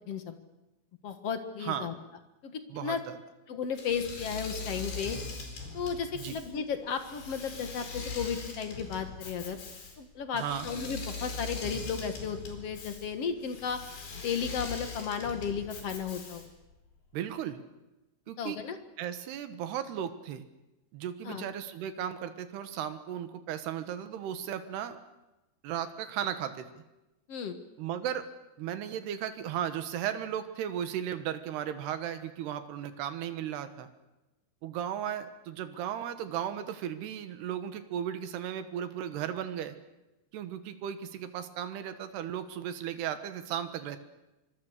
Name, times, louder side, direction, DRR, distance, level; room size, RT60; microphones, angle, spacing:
voice 1, 0.1-0.4 1.0-1.9 2.4-3.0 3.5-5.2 5.7-9.6 10.0-13.8 14.2-16.5 18.4-18.8 21.3-21.5 27.3-27.6, left 6 dB, 50° left, 7 dB, 2.1 m, -34 dB
voice 2, 1.6-1.9 2.7-3.2 6.1-6.4 10.3-10.7 17.1-17.6 18.3-18.6 19.0-20.4 20.9-25.0 25.6-26.7 27.8-28.3 28.6-33.9 34.6-39.8 40.3-44.0, right 9 dB, 90° right, 9 dB, 3.5 m, -35 dB
Engine / Mechanisms, 3.8-16.6, left 4 dB, 85° left, 6.5 m, -41 dB
26.0 x 24.0 x 6.7 m, 1.0 s
omnidirectional pair, 4.6 m